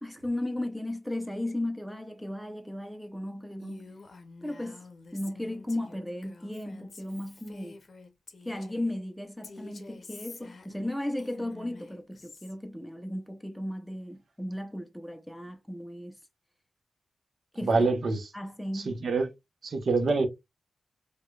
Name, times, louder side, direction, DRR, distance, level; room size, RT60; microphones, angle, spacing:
voice 1, 0.0-3.9 4.4-4.9 5.1-7.8 8.4-16.2 17.5-17.8 18.3-19.0, left 1 dB, ahead, 0.5 m, -35 dB
Female speech woman speaking, 3.6-9.0 9.4-12.5, left 3 dB, 50° left, 0.7 m, -49 dB
voice 2, 17.6-18.3 18.7-19.3 19.6-20.3, right 3 dB, 60° right, 0.8 m, -26 dB
4.8 x 2.2 x 2.3 m
wide cardioid pair, 125°, 0 cm